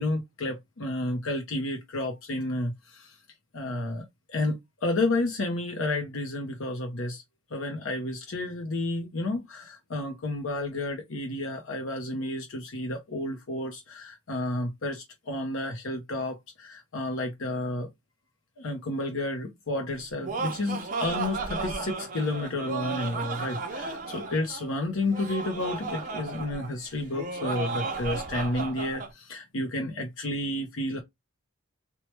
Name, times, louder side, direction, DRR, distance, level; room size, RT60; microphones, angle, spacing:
voice 1, 0.0-3.2 3.5-7.2 7.5-17.9 18.6-31.0, left 2 dB, 65° left, 0.6 m, -31 dB
Laughter, 19.9-29.1, right 4 dB, 35° right, 0.6 m, -34 dB
2.9 x 2.2 x 3.2 m
head